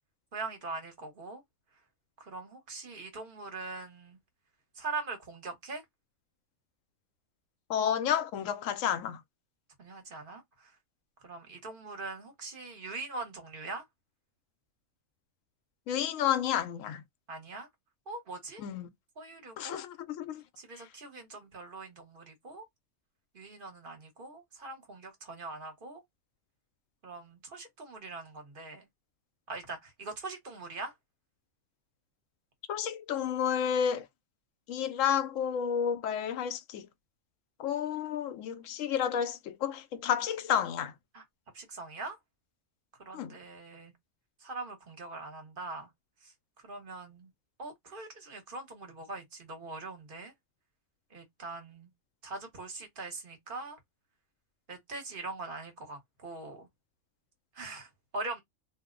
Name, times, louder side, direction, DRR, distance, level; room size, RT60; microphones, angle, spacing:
voice 1, 0.3-1.4 2.2-4.2 4.8-5.8 9.8-10.7 11.2-13.8 17.3-17.7 18.1-18.6 19.2-19.9 20.6-22.6 23.3-26.0 27.0-28.9 29.5-30.9 41.1-41.2 41.5-42.2 43.0-43.9 44.4-45.9 46.6-47.3 47.6-50.3 51.1-51.9 52.2-53.8 54.7-56.7 57.5-58.4, right 3 dB, 45° right, 1.1 m, -42 dB
voice 2, 7.7-9.2 15.9-17.0 18.6-18.9 19.6-20.4 32.7-34.1 34.7-36.9 37.6-40.9 43.1-43.3, left 9 dB, 85° left, 1.0 m, -31 dB
2.6 x 2.1 x 3.6 m
omnidirectional pair, 1.3 m